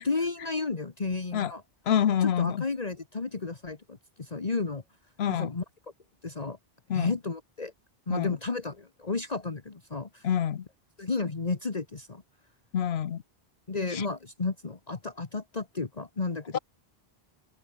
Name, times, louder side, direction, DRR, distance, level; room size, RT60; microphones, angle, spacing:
voice 1, 0.0-1.6 2.2-4.8 5.3-5.6 6.2-6.6 6.9-7.7 8.1-10.3 11.0-12.2 13.7-16.6, left 4 dB, 40° left, 1.5 m, -32 dB
voice 2, 1.9-2.6 5.2-5.5 6.9-7.1 8.1-8.4 10.2-10.6 12.7-13.2 13.9-14.1 16.5-16.6, left 9 dB, 80° left, 1.1 m, -26 dB
omnidirectional pair, 1.0 m